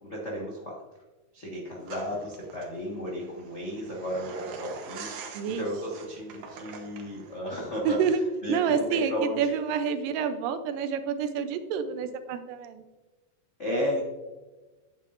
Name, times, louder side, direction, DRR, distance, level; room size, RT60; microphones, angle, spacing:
voice 1, 0.0-0.8 1.3-8.0 8.4-9.5 13.6-14.0, equal, 70° left, -5 dB, 0.6 m, -33 dB
sound 1, 1.9-7.4, right 5 dB, 70° right, 2.3 m, -43 dB
voice 2, 5.3-5.7 7.8-8.2 8.5-12.8, right 7 dB, 85° right, 10 dB, 2.4 m, -28 dB
9.0 x 8.3 x 2.5 m, 1.2 s
omnidirectional pair, 3.8 m